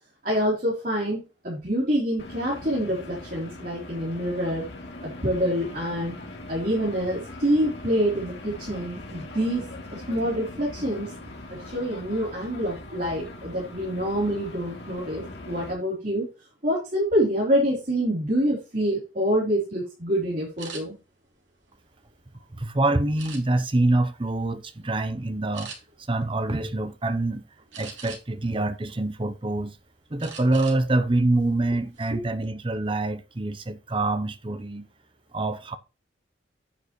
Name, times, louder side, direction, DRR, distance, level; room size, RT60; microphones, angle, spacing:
voice 1, 0.2-4.7 5.0-6.2 6.5-9.7 9.9-11.1 11.5-16.3 16.6-20.9 32.1-32.2, equal, 45° right, 3.7 m, -26 dB
sound 1, 2.2-15.7, left 2 dB, 65° left, 2.6 m, -41 dB
sound 2, 20.6-20.8 21.5-22.4 23.2-23.8 24.3-24.5 24.9-25.0 25.5-25.8 27.7-28.4 28.9-29.7 30.2-30.8 31.1-31.3 31.7-32.1, right 5 dB, 85° right, 3.1 m, -42 dB
voice 2, 22.5-25.7 26.1-27.4 27.8-29.8 30.1-34.9 35.3-35.8, right 2 dB, 25° right, 0.7 m, -25 dB
9.5 x 9.1 x 3.1 m
head